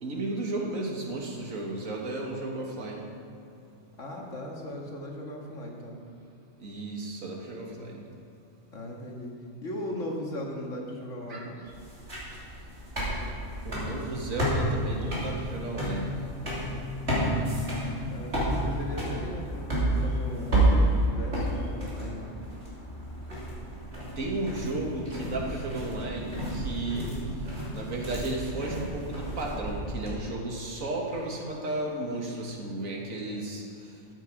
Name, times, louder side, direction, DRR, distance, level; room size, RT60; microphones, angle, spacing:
voice 1, 0.0-3.1 6.6-8.0 11.3-11.4 13.6-16.2 24.2-27.1 27.7-33.6, right 2 dB, 90° right, -1 dB, 2.0 m, -33 dB
voice 2, 4.0-6.1 8.7-9.3 9.6-11.6 18.1-19.7 20.0-22.3 25.5-25.6, left 1 dB, 70° left, -1 dB, 2.1 m, -38 dB
sound 1, 11.7-30.1, right 1 dB, 50° right, 3.3 m, -30 dB
13.0 x 9.2 x 5.0 m, 2.5 s
omnidirectional pair, 1.4 m